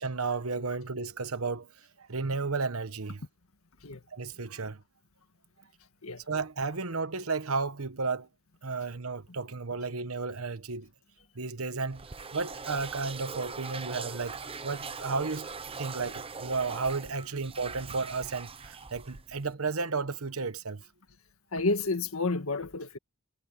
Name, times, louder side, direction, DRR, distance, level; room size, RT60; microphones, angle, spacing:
voice 1, 0.0-1.7 2.0-3.2 4.1-4.8 6.3-8.3 8.6-10.9 11.3-12.1 12.3-15.5 15.8-20.8, right 4 dB, 80° right, 1.2 m, -33 dB
sound 1, 11.9-19.5, right 5 dB, 25° right, 0.9 m, -41 dB
voice 2, 21.5-23.0, left 3 dB, 75° left, 1.8 m, -30 dB
head